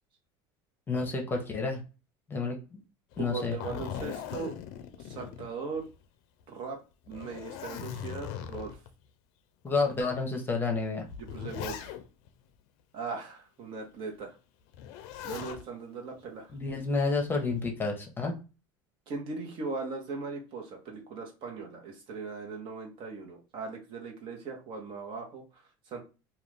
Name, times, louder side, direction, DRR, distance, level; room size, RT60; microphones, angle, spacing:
voice 1, 0.9-1.8 2.3-2.8 3.2-3.6 9.6-11.0 16.5-18.3, left 3 dB, 20° left, 2 dB, 0.8 m, -30 dB
Zipper (clothing), 3.1-6.0 6.4-6.5 7.0-8.9 9.7-9.8 10.7-12.3 14.7-15.6 17.0-17.5, left 9 dB, 70° left, 0.4 m, -40 dB
voice 2, 3.2-4.5 5.0-5.9 6.5-6.8 7.1-8.8 11.2-11.9 12.9-14.4 15.2-16.5 19.1-26.0, right 4 dB, 50° right, 1 dB, 0.9 m, -39 dB
2.4 x 2.3 x 3.2 m, 0.31 s
supercardioid pair, 110°, 11 cm